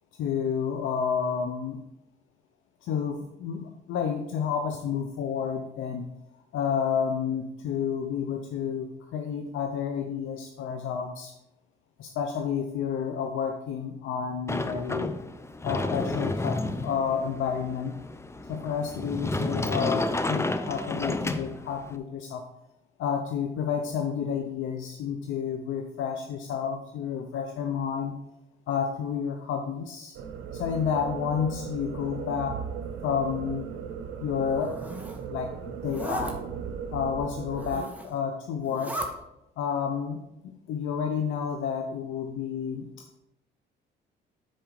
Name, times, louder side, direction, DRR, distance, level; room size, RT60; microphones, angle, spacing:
voice 1, 0.2-1.8 2.8-6.0 6.5-11.3 12.0-15.2 15.6-17.9 18.5-22.4 23.0-28.1 28.7-30.2 30.5-32.6 33.0-33.7 34.2-34.8 35.3-36.4 36.9-39.0 39.6-42.9, left 7 dB, 80° left, 4 dB, 0.8 m, -30 dB
Sliding door, 14.5-21.9, left 2 dB, 15° left, 0.6 m, -31 dB
sound 1, 30.1-37.8, right 7 dB, 85° right, 0.9 m, -37 dB
Zipper (clothing), 34.4-35.2 35.8-36.3 37.4-38.2 38.6-39.1, right 1 dB, 5° right, 1.4 m, -37 dB
10.5 x 4.7 x 4.7 m, 0.87 s
cardioid pair, 90°, 20 cm